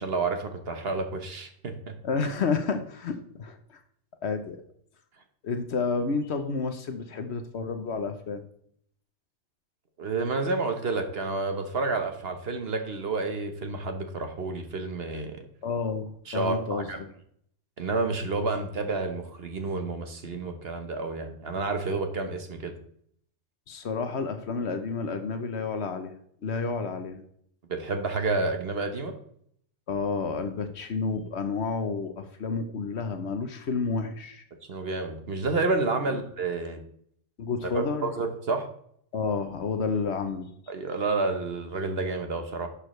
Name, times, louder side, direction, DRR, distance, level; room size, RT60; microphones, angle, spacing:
voice 1, 0.0-2.0 10.0-15.4 16.3-17.0 17.8-22.8 27.7-29.1 34.7-36.8 37.7-38.7 40.7-42.7, right 3 dB, 50° right, 6 dB, 1.2 m, -30 dB
voice 2, 2.0-3.8 4.2-4.6 5.4-8.4 15.6-17.1 23.7-26.1 26.4-27.3 29.9-34.4 36.0-36.2 37.4-38.1 39.1-40.5, left 4 dB, 60° left, 8 dB, 1.1 m, -30 dB
11.0 x 6.6 x 3.2 m, 0.67 s
omnidirectional pair, 1.3 m